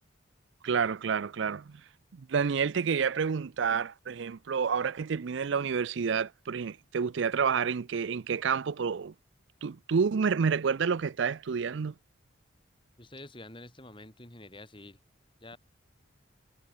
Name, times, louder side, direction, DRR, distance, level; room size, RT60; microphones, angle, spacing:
voice 1, 0.6-1.8 2.1-9.1 9.6-11.9, right 6 dB, 70° right, 0.5 m, -29 dB
voice 2, 13.0-15.0 15.4-15.6, left 2 dB, 25° left, 5.3 m, -48 dB
head